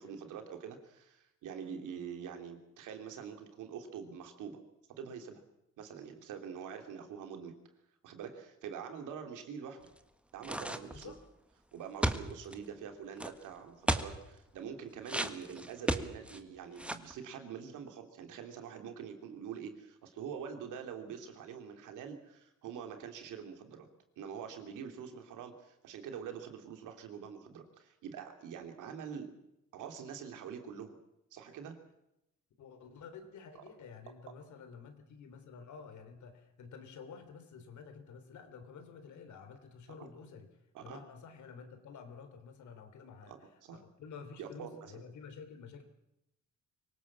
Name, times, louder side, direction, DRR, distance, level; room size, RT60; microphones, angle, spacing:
voice 1, 0.0-4.6 4.9-5.4 5.8-7.6 8.0-9.9 10.3-11.1 11.7-23.9 24.2-29.3 29.7-31.0 31.3-31.8 40.7-41.0 43.3-43.8 44.4-44.7, right 7 dB, 85° right, 6 dB, 3.1 m, -45 dB
sound 1, 10.4-11.1 12.0-12.6 13.2-13.3 13.9-14.1 15.1-16.4 16.8-17.1, right 1 dB, 5° right, 1.6 m, -33 dB
voice 2, 10.8-11.2 32.6-40.5 40.8-43.4 43.7-45.8, left 5 dB, 70° left, 8 dB, 3.5 m, -50 dB
24.5 x 18.0 x 7.5 m, 0.86 s
cardioid pair, 90°, 30 cm